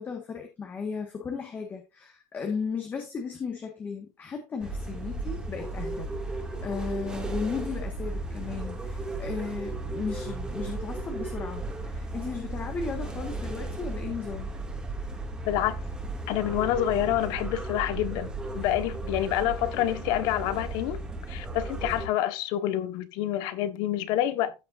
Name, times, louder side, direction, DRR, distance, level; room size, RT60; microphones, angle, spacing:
voice 1, 0.0-14.5, left 5 dB, 25° left, 1.6 m, -35 dB
sound 1, 4.6-22.1, right 2 dB, 10° right, 2.3 m, -35 dB
voice 2, 15.4-15.8 16.3-21.0 21.3-24.5, left 12 dB, 60° left, 1.3 m, -27 dB
15.0 x 5.6 x 2.6 m
cardioid pair, 145°, 8 cm